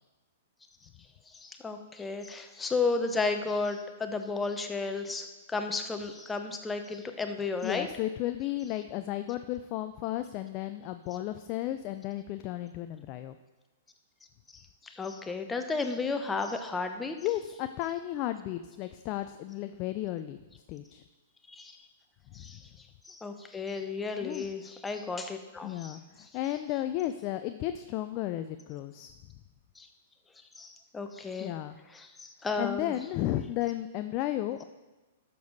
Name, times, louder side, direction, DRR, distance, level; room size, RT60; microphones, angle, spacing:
voice 1, 1.3-7.9 14.8-17.2 21.5-21.8 22.3-22.6 23.1-26.0 29.8-29.9 30.6-31.5 31.9-32.9, left 4 dB, 10° left, 6 dB, 1.0 m, -33 dB
voice 2, 7.6-13.4 17.2-20.4 20.7-21.0 22.4-22.6 24.2-24.5 25.6-29.1 31.4-31.8 32.6-34.6, left 13 dB, 40° left, 9 dB, 0.4 m, -34 dB
12.5 x 7.0 x 4.1 m, 1.1 s
figure-of-eight pair, 110°, 0 cm